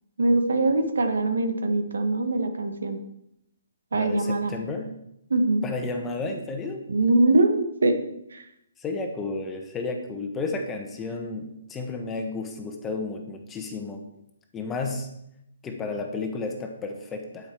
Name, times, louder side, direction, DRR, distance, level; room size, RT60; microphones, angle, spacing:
voice 1, 0.2-3.0 3.9-4.5 5.3-5.6 6.9-8.0 8.3-8.4, right 2 dB, 90° right, 7 dB, 1.6 m, -22 dB
voice 2, 3.9-4.9 5.6-6.8 8.8-14.0 14.5-15.1 15.6-17.5, left 3 dB, 10° left, 3 dB, 1.2 m, -32 dB
9.3 x 8.8 x 4.6 m, 0.79 s
hypercardioid pair, 165°, 0 cm